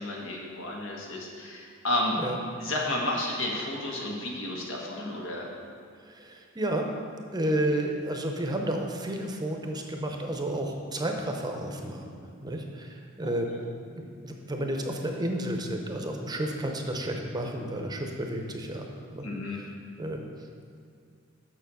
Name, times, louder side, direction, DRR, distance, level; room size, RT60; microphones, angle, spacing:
voice 1, 0.0-2.2 2.6-5.5 13.2-13.4 19.2-19.6, left 1 dB, 80° left, -2 dB, 1.5 m, -32 dB
voice 2, 6.1-6.9 7.3-12.1 12.4-13.5 14.0-18.9 19.1-19.3 19.5-19.7 20.0-20.2, right 1 dB, 20° right, 2 dB, 0.7 m, -31 dB
6.9 x 6.1 x 6.2 m, 2.2 s
head